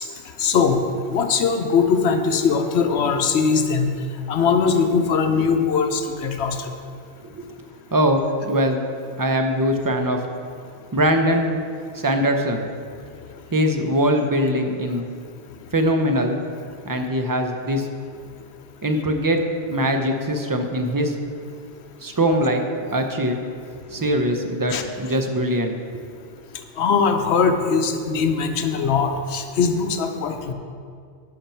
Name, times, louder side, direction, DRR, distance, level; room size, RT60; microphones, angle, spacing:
voice 1, 0.4-0.8 1.1-3.9 4.3-6.7 24.7-24.8 26.8-30.5, left 5 dB, 85° left, 6 dB, 1.0 m, -20 dB
voice 2, 7.9-8.8 9.2-10.2 10.9-11.6 11.9-12.6 13.5-15.1 15.7-16.4 16.8-17.9 18.8-19.4 19.7-21.2 22.0-22.6 22.9-23.4 23.9-26.0, equal, 25° right, 5 dB, 0.5 m, -22 dB
11.0 x 5.8 x 4.4 m, 2.3 s
omnidirectional pair, 1.1 m